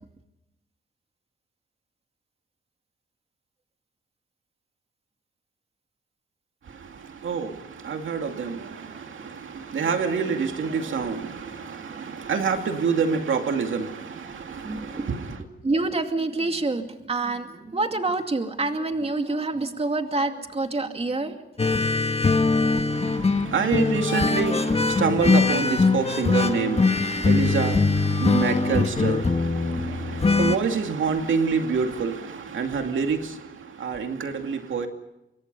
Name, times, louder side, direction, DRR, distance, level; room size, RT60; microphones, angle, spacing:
voice 1, 6.6-15.4 22.9-34.9, right 5 dB, 75° right, 2.5 m, -27 dB
voice 2, 14.6-15.1 15.6-21.7, right 2 dB, 30° right, 2.4 m, -27 dB
sound 1, 21.6-30.6, left 3 dB, 30° left, 1.4 m, -22 dB
27.0 x 24.0 x 5.5 m
cardioid pair, 90°, 20 cm